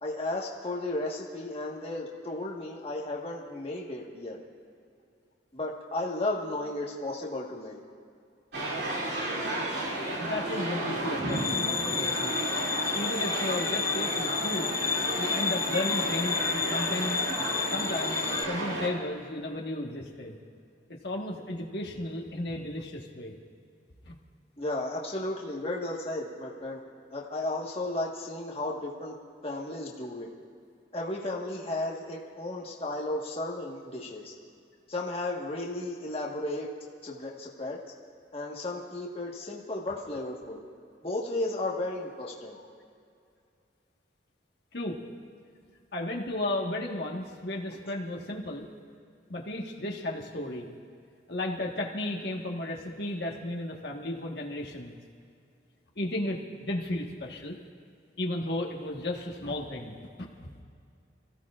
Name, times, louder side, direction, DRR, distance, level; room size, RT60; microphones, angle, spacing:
voice 1, 0.0-4.4 5.5-7.8 24.6-26.8 27.1-29.2 29.4-30.3 30.9-34.3 34.9-36.7 37.0-37.8 38.3-40.6 41.0-42.6, left 2 dB, 30° left, -2 dB, 1.4 m, -34 dB
sound 1, 8.5-18.9, right 1 dB, 65° right, 2.6 m, -32 dB
voice 2, 10.0-12.3 12.9-14.8 15.2-17.2 17.7-20.4 20.9-23.3 24.0-24.1 42.5-42.6 44.7-45.0 45.9-48.7 49.3-50.7 51.3-54.9 55.9-57.5 58.2-60.5, left 1 dB, 60° left, -1 dB, 1.4 m, -34 dB
sound 2, 11.3-18.4, left 6 dB, 15° left, 0.3 m, -31 dB
28.0 x 15.5 x 2.5 m, 2.4 s
head